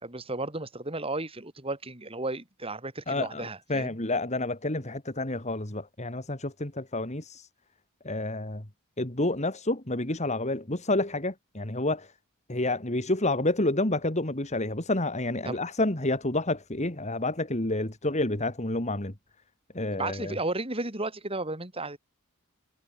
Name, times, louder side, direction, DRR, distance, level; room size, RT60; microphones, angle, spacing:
voice 1, 0.0-4.0 15.4-15.6 19.9-22.0, right 2 dB, 25° right, 3.5 m, -34 dB
voice 2, 3.1-7.5 8.0-8.7 9.0-12.1 12.5-19.1 19.7-20.3, left 2 dB, 30° left, 2.5 m, -29 dB
head